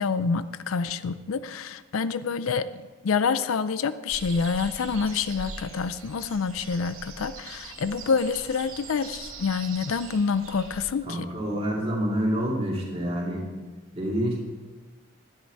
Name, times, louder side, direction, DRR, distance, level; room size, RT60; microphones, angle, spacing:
voice 1, 0.0-2.7 3.0-11.3, left 5 dB, 85° left, 14 dB, 0.4 m, -27 dB
sound 1, 4.1-10.9, right 4 dB, 85° right, 2.1 m, -42 dB
voice 2, 11.1-13.5 13.9-14.4, equal, 30° right, -3 dB, 2.5 m, -27 dB
11.0 x 10.5 x 4.7 m, 1.3 s
head